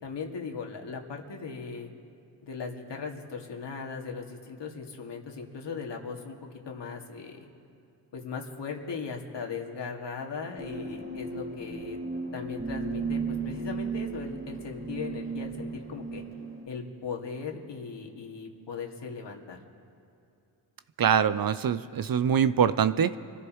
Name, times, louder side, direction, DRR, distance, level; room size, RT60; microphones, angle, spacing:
voice 1, 0.0-1.9 2.4-6.4 6.6-7.5 8.1-12.0 12.3-16.2 16.7-19.6, left 5 dB, 65° left, 0 dB, 2.3 m, -38 dB
sound 1, 10.6-16.7, right 4 dB, 25° right, 3.3 m, -35 dB
voice 2, 21.0-23.2, right 8 dB, 50° right, 14 dB, 0.7 m, -24 dB
25.0 x 14.5 x 3.1 m, 2.7 s
supercardioid pair, 50°, 46 cm